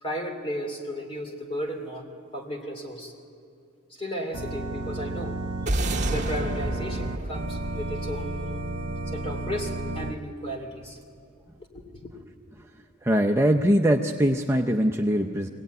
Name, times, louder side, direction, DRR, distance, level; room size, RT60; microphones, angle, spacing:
voice 1, 0.0-3.1 3.9-5.4 6.1-8.4 9.1-11.0 11.7-12.1, equal, 25° left, 3 dB, 2.7 m, -34 dB
Organ, 4.3-10.2, right 2 dB, 70° right, 1.1 m, -32 dB
sound 1, 5.7-10.1, right 1 dB, 35° right, 1.7 m, -31 dB
voice 2, 13.0-15.5, equal, 10° right, 3 dB, 0.6 m, -22 dB
24.0 x 18.0 x 9.3 m, 2.4 s
head